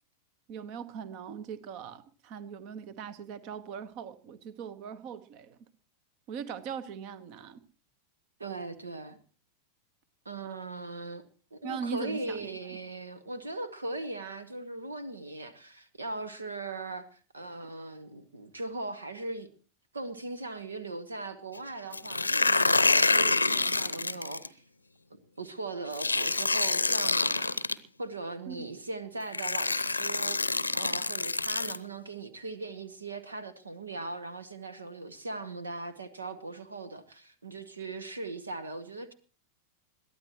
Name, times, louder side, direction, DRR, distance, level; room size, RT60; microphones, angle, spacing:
voice 1, 0.5-5.6 6.3-7.6 11.6-12.6 28.5-28.7, right 7 dB, 45° right, 15 dB, 1.2 m, -40 dB
voice 2, 8.4-9.2 10.2-11.2 11.5-19.5 19.9-24.6 25.4-27.6 28.0-39.1, right 2 dB, 75° right, 13 dB, 1.2 m, -39 dB
sound 1, 21.9-24.5 25.9-27.7 28.8-28.9 29.3-31.8, left 3 dB, 80° left, 0.7 m, -27 dB
22.0 x 15.0 x 3.1 m, 0.40 s
figure-of-eight pair, 90°, 0 cm